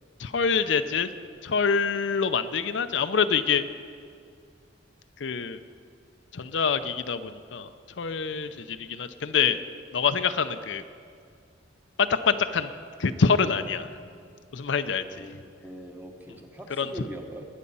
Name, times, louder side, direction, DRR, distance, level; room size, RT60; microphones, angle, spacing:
voice 1, 0.2-1.1 1.4-3.6 5.2-5.6 6.3-7.7 8.0-9.6 9.9-10.8 12.0-12.7 13.0-13.9 14.5-15.3 16.8-17.1, left 5 dB, 75° left, 10 dB, 0.6 m, -25 dB
voice 2, 15.0-17.4, right 1 dB, 10° right, 3 dB, 1.1 m, -42 dB
20.0 x 8.3 x 5.5 m, 2.3 s
head